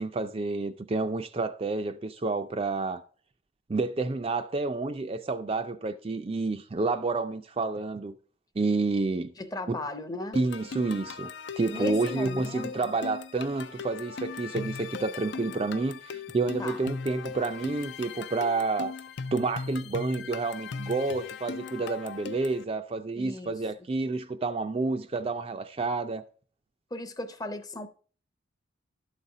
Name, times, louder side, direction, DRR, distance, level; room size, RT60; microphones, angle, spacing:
voice 1, 0.0-3.0 3.7-8.2 8.6-9.3 9.7-9.8 10.3-18.9 19.3-26.2, right 3 dB, 30° right, 0.4 m, -29 dB
voice 2, 9.4-10.4 11.6-12.8 16.6-16.8 23.2-23.5 26.9-27.9, left 1 dB, 20° left, 0.6 m, -36 dB
sound 1, 10.3-22.6, left 5 dB, 65° left, 0.5 m, -39 dB
12.0 x 4.1 x 4.9 m
head